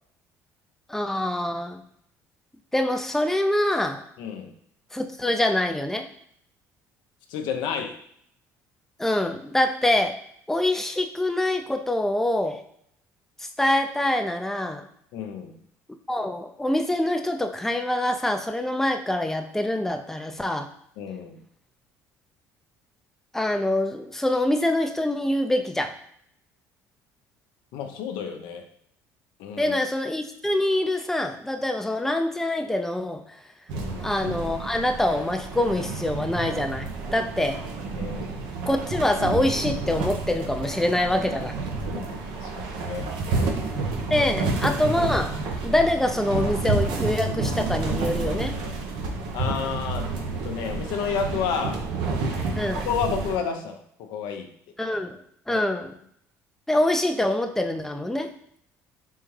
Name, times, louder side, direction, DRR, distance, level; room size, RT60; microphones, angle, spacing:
voice 1, 0.9-1.8 2.7-4.0 4.9-6.1 9.0-10.2 10.5-12.6 13.4-14.9 16.1-20.7 23.3-26.0 29.6-33.4 34.0-37.6 38.7-41.6 44.1-45.4 45.6-48.6 52.6-52.9 54.8-55.9 56.7-58.3, left 1 dB, 5° left, 6 dB, 0.5 m, -25 dB
voice 2, 4.2-4.5 7.3-8.0 15.1-15.5 21.0-21.4 27.7-28.6 29.4-29.8 33.7-34.1 38.0-38.4 41.9-43.6 49.3-50.1 50.4-51.8 52.9-54.5 55.5-55.6, left 7 dB, 70° left, 5 dB, 0.6 m, -31 dB
sound 1, 33.7-53.4, right 3 dB, 70° right, 0.7 m, -30 dB
3.5 x 3.4 x 3.2 m, 0.68 s
hypercardioid pair, 65°, 8 cm